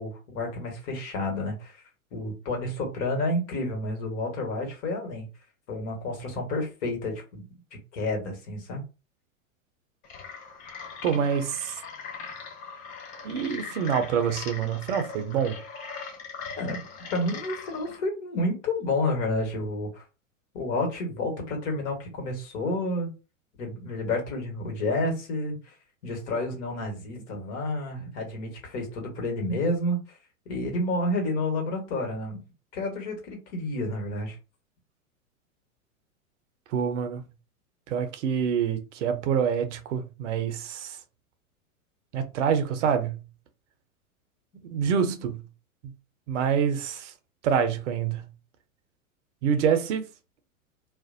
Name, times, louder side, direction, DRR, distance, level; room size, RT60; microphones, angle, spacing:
voice 1, 0.0-1.8 2.1-5.3 5.7-7.4 7.9-8.8 16.6-16.8 17.1-20.0 20.5-23.1 23.6-25.7 26.0-30.0 30.5-32.4 32.7-34.4, left 2 dB, 50° left, 1.3 m, -30 dB
sound 1, 10.0-18.0, left 5 dB, 20° left, 0.4 m, -40 dB
voice 2, 11.0-11.8 13.2-15.6 36.7-37.2 37.9-41.0 42.1-43.2 44.7-45.4 46.3-47.1 47.4-48.3 49.4-50.0, right 7 dB, 55° right, 0.6 m, -26 dB
2.5 x 2.1 x 2.6 m
figure-of-eight pair, 95°, 43 cm